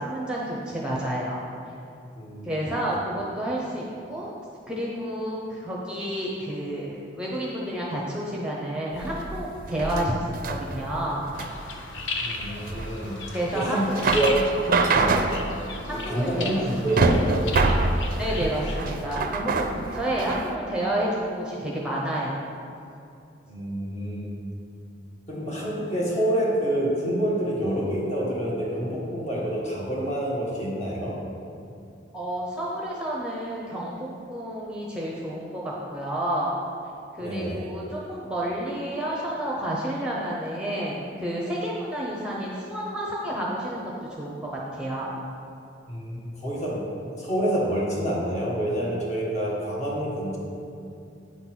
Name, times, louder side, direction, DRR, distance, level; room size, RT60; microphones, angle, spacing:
voice 1, 0.0-1.5 2.4-4.3 4.7-11.2 13.3-14.2 15.9-16.8 18.1-22.4 32.1-36.6 37.2-43.9 44.2-45.1, right 1 dB, 5° right, -4 dB, 0.8 m, -30 dB
voice 2, 2.1-2.7 12.2-13.2 13.5-13.9 14.1-14.4 14.9-15.3 15.9-17.4 23.4-24.4 25.3-31.2 37.2-37.7 45.9-46.8 47.2-50.4, right 1 dB, 40° left, -5 dB, 1.7 m, -27 dB
sound 1, 8.9-20.5, right 3 dB, 50° right, 0.5 m, -26 dB
Frogs Birds and bikes in Berlin Buch, 11.3-18.9, left 3 dB, 80° left, 0.7 m, -36 dB
8.7 x 4.0 x 6.1 m, 2.6 s
head